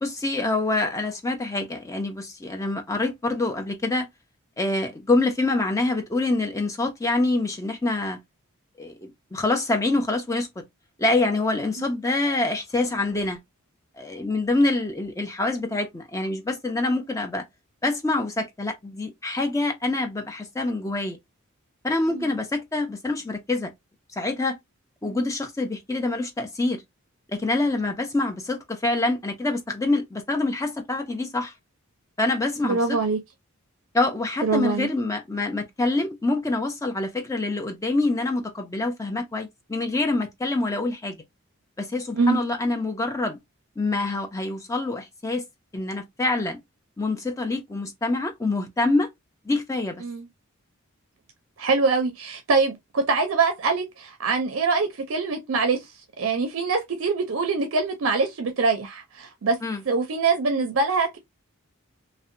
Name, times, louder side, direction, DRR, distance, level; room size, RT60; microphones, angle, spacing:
voice 1, 0.0-4.1 4.6-8.2 8.8-10.5 11.0-13.4 14.0-17.4 17.8-21.2 21.8-23.7 24.1-24.6 25.0-26.8 27.3-31.5 32.2-32.8 33.9-41.2 41.8-43.4 43.8-45.4 45.7-46.6 47.0-49.1 49.4-50.0 59.6-59.8, left 2 dB, 15° left, 0.4 m, -26 dB
voice 2, 32.6-33.2 34.4-34.9 42.1-42.4 50.0-50.3 51.6-59.6 59.9-61.2, right 4 dB, 65° right, 0.4 m, -24 dB
2.6 x 2.1 x 2.5 m
head